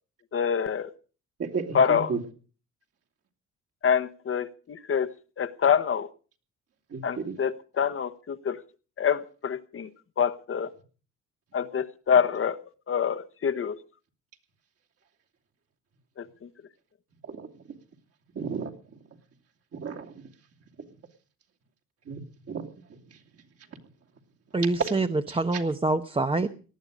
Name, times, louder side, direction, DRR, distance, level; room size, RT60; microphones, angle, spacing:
voice 1, 0.3-0.9 1.7-2.1 3.8-6.1 7.0-8.6 9.0-9.9 10.2-10.7 11.5-12.6 12.9-13.8 16.2-16.5, left 7 dB, 45° left, 9 dB, 1.1 m, -26 dB
voice 2, 1.4-2.2 6.9-7.3 17.2-17.6 18.3-19.0 19.7-20.2 22.0-22.2 22.5-22.7 23.1-23.2, right 5 dB, 50° right, 1 dB, 2.9 m, -34 dB
voice 3, 24.5-26.5, right 2 dB, 20° right, 8 dB, 0.9 m, -25 dB
19.0 x 12.0 x 5.2 m, 0.38 s
cardioid pair, 90°, 30 cm